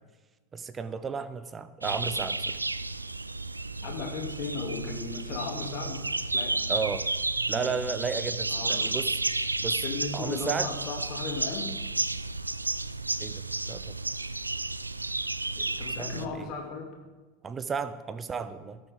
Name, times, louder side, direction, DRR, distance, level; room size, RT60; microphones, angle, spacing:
voice 1, 0.5-2.6 6.7-7.1 7.5-9.2 9.6-9.8 10.1-10.7 13.2-14.0 16.0-16.5 17.4-18.8, right 5 dB, 20° right, 14 dB, 0.6 m, -33 dB
sound 1, 1.8-16.3, right 2 dB, 85° right, 0.3 m, -32 dB
voice 2, 3.8-6.6 7.5-7.7 8.5-8.9 9.8-11.7 15.6-16.9, left 5 dB, 40° left, 0 dB, 2.3 m, -36 dB
18.5 x 7.0 x 3.5 m, 1.3 s
figure-of-eight pair, 80°, 0 cm